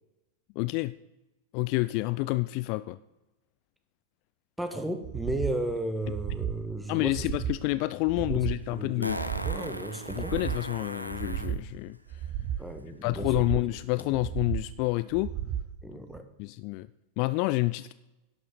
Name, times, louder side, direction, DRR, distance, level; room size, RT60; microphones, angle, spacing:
voice 1, 0.6-0.9 1.5-3.0 6.9-9.2 10.2-12.0 13.0-15.3 16.4-16.9 17.2-17.9, left 20 dB, 45° left, 16 dB, 0.3 m, -28 dB
voice 2, 4.6-7.2 8.1-8.5 8.7-9.1 9.4-10.4 12.6-13.3 14.0-14.1 15.8-16.3, right 1 dB, 5° right, 7 dB, 1.4 m, -34 dB
sound 1, 5.0-5.6 6.0-6.6 7.0-7.6 8.0-8.6 9.0-9.6 10.0-10.6 11.1-11.6 12.1-12.7 13.1-13.7 14.1-14.7 15.1-15.7 16.1-16.2, right 10 dB, 40° right, 0.8 m, -34 dB
Fart, 7.9-8.0 9.0-11.6 14.0-14.1, equal, 90° right, 0.7 m, -37 dB
11.5 x 6.5 x 6.7 m, 0.96 s
figure-of-eight pair, 90°, 0 cm